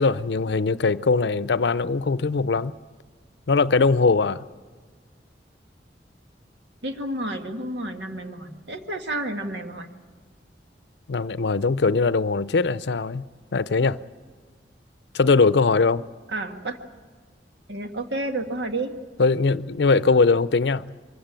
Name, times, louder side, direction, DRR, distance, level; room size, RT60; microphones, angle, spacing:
voice 1, 0.0-2.7 3.5-4.4 11.1-13.2 13.5-14.0 15.1-16.0 19.2-20.9, left 4 dB, 75° left, 0.6 m, -21 dB
voice 2, 6.8-9.9 16.3-16.8 17.7-18.9, right 2 dB, 85° right, 1.8 m, -30 dB
24.5 x 16.0 x 9.0 m
head